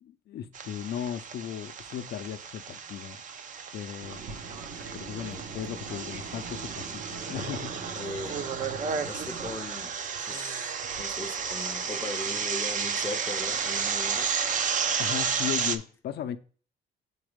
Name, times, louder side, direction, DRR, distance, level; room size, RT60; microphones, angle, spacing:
voice 1, 0.0-3.2 3.7-4.2 4.9-7.0 7.3-7.8 15.0-16.4, left 10 dB, 60° left, 0.5 m, -36 dB
sound 1, 0.5-15.8, right 6 dB, 45° right, 0.6 m, -32 dB
Fixed-wing aircraft airplane, 4.0-9.6, right 4 dB, 80° right, 1.4 m, -42 dB
voice 2, 7.9-8.4 9.0-14.4, left 2 dB, 15° left, 0.5 m, -39 dB
5.3 x 4.0 x 5.0 m
cardioid pair, 145°, 19 cm